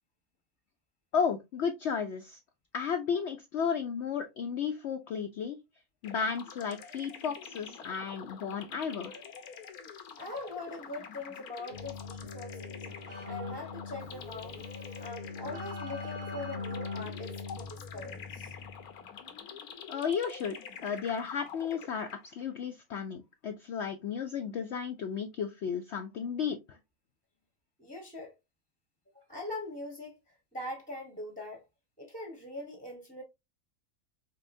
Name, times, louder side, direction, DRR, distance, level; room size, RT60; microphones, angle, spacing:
voice 1, 1.1-2.4 2.7-5.6 6.0-9.2 19.9-20.6 20.8-26.8, left 6 dB, 65° left, 0.7 m, -33 dB
sound 1, 6.0-22.4, left 7 dB, 85° left, 1.3 m, -47 dB
voice 2, 10.2-12.9 13.2-14.6 15.0-18.5 27.8-28.3 29.1-31.6 32.0-33.2, left 2 dB, 5° left, 0.8 m, -42 dB
Keyboard (musical), 11.7-19.0, left 4 dB, 85° right, 2.7 m, -41 dB
5.6 x 3.0 x 2.6 m
omnidirectional pair, 1.6 m